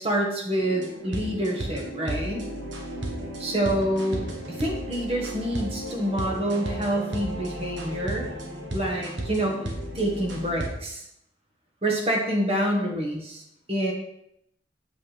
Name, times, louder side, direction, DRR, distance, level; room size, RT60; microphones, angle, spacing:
voice 1, 0.0-2.5 3.4-8.3 8.7-9.6 9.9-11.0 11.8-13.4 13.7-13.9, right 1 dB, 35° right, 0 dB, 1.3 m, -27 dB
sound 1, 0.6-10.7, right 1 dB, 80° right, 1.2 m, -34 dB
7.5 x 5.6 x 3.3 m, 0.76 s
head